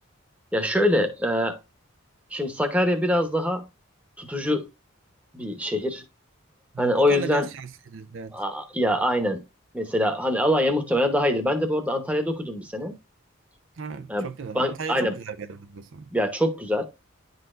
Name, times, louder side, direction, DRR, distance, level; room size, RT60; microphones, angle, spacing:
voice 1, 0.5-1.6 2.3-3.6 4.2-4.7 5.3-6.0 6.8-7.5 8.3-9.4 9.7-12.9 14.1-14.3 14.5-15.1 16.1-16.9, left 1 dB, 5° right, 0.9 m, -24 dB
voice 2, 6.7-8.4 13.8-16.1, right 5 dB, 60° right, 0.5 m, -36 dB
10.5 x 4.0 x 2.5 m
head